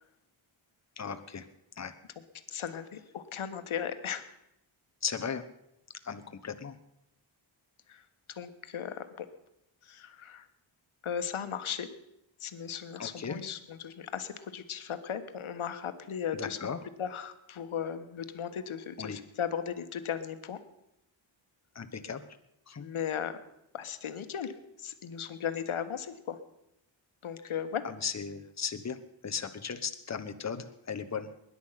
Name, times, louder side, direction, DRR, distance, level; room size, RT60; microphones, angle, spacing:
voice 1, 1.0-1.5 1.8-1.9 5.0-5.4 6.0-6.8 13.0-13.4 16.3-16.8 19.0-19.2 21.7-22.2 22.7-22.9 27.8-31.3, left 6 dB, 35° left, 8 dB, 1.1 m, -36 dB
voice 2, 2.5-4.3 7.9-9.3 9.8-10.5 11.0-11.9 12.4-16.6 17.0-20.6 22.8-23.4 23.7-26.4 27.2-27.8, left 8 dB, 90° left, 10 dB, 1.3 m, -36 dB
20.5 x 10.5 x 5.8 m, 0.85 s
wide cardioid pair, 105°, 48 cm